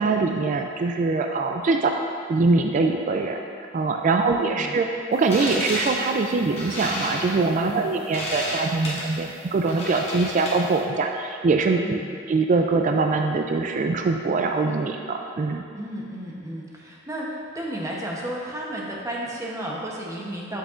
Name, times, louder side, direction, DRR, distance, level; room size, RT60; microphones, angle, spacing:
voice 1, 0.0-1.9 2.3-3.4 3.7-12.0 12.3-15.6, right 3 dB, 40° right, 4 dB, 0.3 m, -23 dB
voice 2, 4.2-4.7 7.6-7.9 11.8-12.1 15.7-20.6, right 1 dB, 15° right, -3 dB, 0.8 m, -33 dB
sound 1, 5.1-10.8, left 1 dB, 30° left, 1.3 m, -32 dB
7.3 x 6.6 x 2.5 m, 2.3 s
head